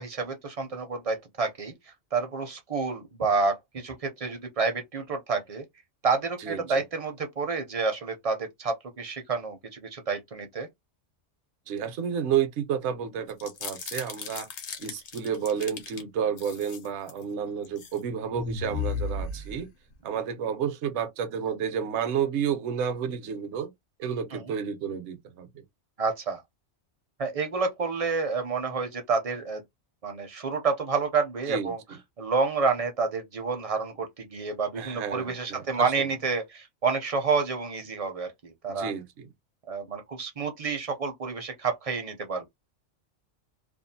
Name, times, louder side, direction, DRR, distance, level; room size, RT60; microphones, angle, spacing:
voice 1, 0.0-1.7 2.1-5.6 6.0-10.7 24.3-24.4 26.0-26.4 27.2-29.6 30.0-31.8 32.2-38.9 39.7-42.5, right 4 dB, 40° right, 0.5 m, -29 dB
voice 2, 6.4-6.8 11.7-14.5 14.8-19.7 20.0-23.7 24.0-25.6 31.5-32.0 34.8-36.1 38.7-39.3, right 8 dB, 70° right, 0.9 m, -31 dB
sound 1, 13.3-16.0 16.4-17.2 17.6-18.0 18.3-19.9, left 4 dB, 70° left, 1.0 m, -35 dB
2.6 x 2.3 x 2.6 m
omnidirectional pair, 1.2 m